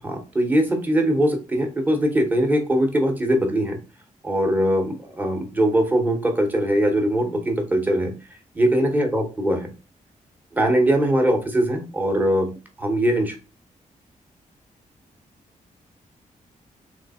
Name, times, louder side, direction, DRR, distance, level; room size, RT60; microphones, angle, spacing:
voice 1, 0.0-3.8 4.2-8.1 8.5-9.7 10.5-12.5 12.8-13.3, right 1 dB, 10° right, 3 dB, 0.8 m, -21 dB
3.5 x 3.2 x 4.1 m, 0.33 s
wide cardioid pair, 165°, 14 cm